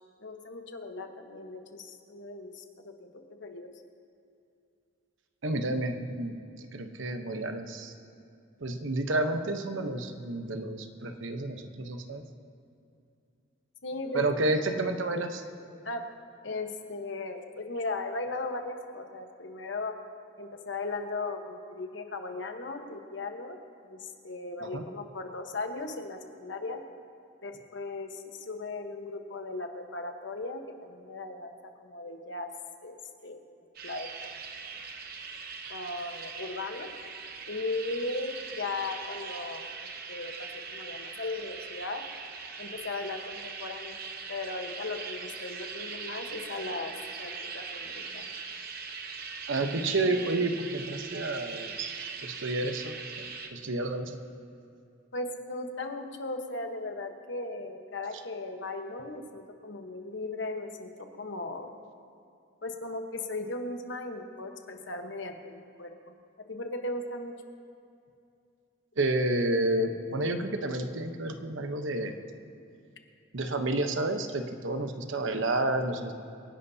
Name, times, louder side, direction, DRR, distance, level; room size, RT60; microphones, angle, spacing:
voice 1, 0.2-3.7 13.8-14.3 15.8-16.1 16.4-20.0 20.4-26.8 27.4-32.5 32.8-33.0 33.2-33.4 33.8-34.4 35.7-36.9 37.5-39.7 40.1-42.0 42.6-44.0 44.3-48.3 55.1-61.7 62.6-66.1 66.5-67.3, left 2 dB, 65° left, 5 dB, 1.2 m, -37 dB
voice 2, 5.4-7.9 8.6-12.2 14.1-15.4 24.6-24.8 49.5-52.9 53.5-54.2 69.0-72.2 73.3-76.1, right 2 dB, 75° right, 6 dB, 1.0 m, -30 dB
sound 1, 33.7-53.5, right 5 dB, 50° right, 0.9 m, -41 dB
26.5 x 11.0 x 2.8 m, 2.5 s
head